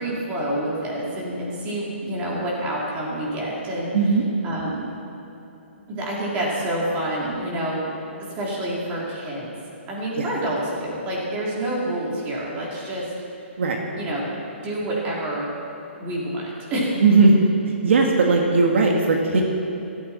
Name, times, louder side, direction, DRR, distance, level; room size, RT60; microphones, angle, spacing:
voice 1, 0.0-3.9 4.4-4.9 5.9-7.9 8.4-9.5 9.9-13.1 13.9-14.3 14.6-15.5 16.0-17.0, right 1 dB, 20° right, -5 dB, 3.5 m, -27 dB
voice 2, 3.9-4.3 10.2-10.3 13.6-13.8 17.0-17.5 17.8-19.4, right 3 dB, 65° right, 1 dB, 1.7 m, -17 dB
17.0 x 14.0 x 4.4 m, 2.9 s
hypercardioid pair, 160°, 7 cm